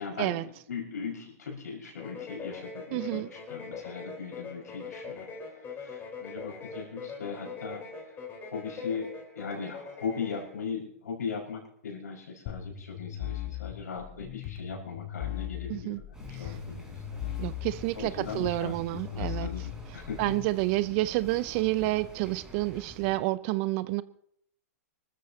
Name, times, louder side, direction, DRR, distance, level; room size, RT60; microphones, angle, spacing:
voice 1, 0.0-5.3 5.8-7.8 8.5-16.0 16.3-17.0 17.9-20.4, left 5 dB, 80° left, 5.6 m, -39 dB
sound 1, 2.0-10.5, left 5 dB, 20° left, 4.3 m, -42 dB
voice 2, 2.9-3.3 15.7-16.0 17.4-19.5 20.2-24.0, right 18 dB, 45° right, 0.6 m, -29 dB
sound 2, 12.5-20.5, left 11 dB, 45° left, 3.2 m, -38 dB
sound 3, 16.1-23.2, right 2 dB, 5° right, 4.2 m, -48 dB
25.5 x 13.5 x 2.9 m
hypercardioid pair, 125°, 9 cm